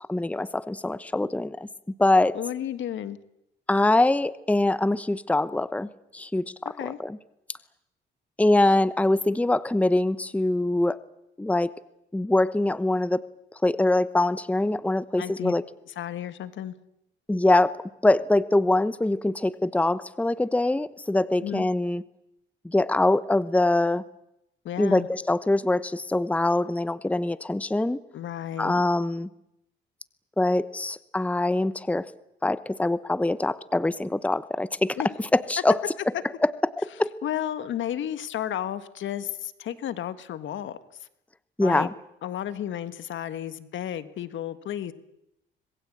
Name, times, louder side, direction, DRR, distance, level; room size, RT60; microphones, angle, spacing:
voice 1, 0.1-1.7 2.0-2.4 3.7-6.7 7.0-7.2 8.4-11.0 11.4-11.7 12.1-13.2 13.6-15.6 17.3-17.7 18.0-22.0 22.6-24.0 24.8-28.0 28.6-29.3 30.4-32.1 32.4-35.0 35.3-35.8 36.4-36.5 37.0-37.1 41.6-41.9, left 2 dB, 5° left, 16 dB, 0.9 m, -23 dB
voice 2, 2.3-3.2 6.7-7.0 15.2-15.5 15.9-16.7 21.4-21.7 24.6-25.1 28.1-28.8 35.0-35.1 37.2-40.8 41.6-41.9 42.2-44.9, left 11 dB, 70° left, 13 dB, 1.7 m, -32 dB
25.5 x 21.0 x 8.7 m, 0.82 s
cardioid pair, 90°, 20 cm